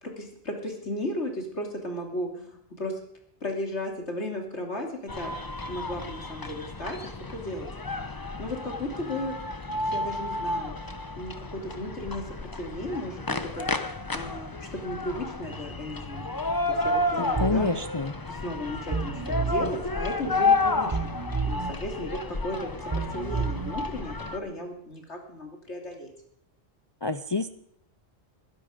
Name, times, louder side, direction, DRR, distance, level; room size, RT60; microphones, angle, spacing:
voice 1, 0.0-2.9 3.4-4.9 5.2-5.3 5.7-7.7 8.4-9.4 9.7-10.7 11.2-12.2 12.6-13.7 14.1-16.2 16.7-17.7 18.3-21.1 21.4-22.2 22.4-26.1, left 1 dB, 70° left, 2 dB, 3.1 m, -35 dB
sound 1, 5.1-24.4, left 2 dB, 20° left, 0.8 m, -31 dB
voice 2, 17.2-18.1 27.0-27.6, left 3 dB, 35° left, 11 dB, 0.4 m, -28 dB
sound 2, 17.4-17.7 18.9-19.7 20.9-21.7 22.9-23.7, right 5 dB, 25° right, 0.7 m, -30 dB
21.0 x 10.5 x 5.1 m, 0.71 s
omnidirectional pair, 1.2 m